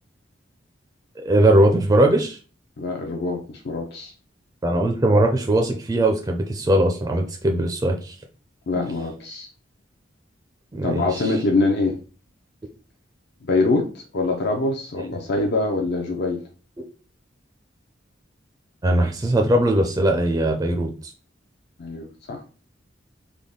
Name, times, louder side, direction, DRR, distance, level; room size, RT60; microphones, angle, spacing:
voice 1, 1.2-2.4 4.6-8.2 10.7-11.3 18.8-21.1, right 1 dB, 20° right, 2 dB, 0.4 m, -20 dB
voice 2, 2.8-4.1 8.7-9.5 10.8-12.0 13.4-16.4 21.8-22.4, left 2 dB, 60° left, 3 dB, 0.5 m, -24 dB
3.4 x 2.2 x 3.7 m, 0.36 s
head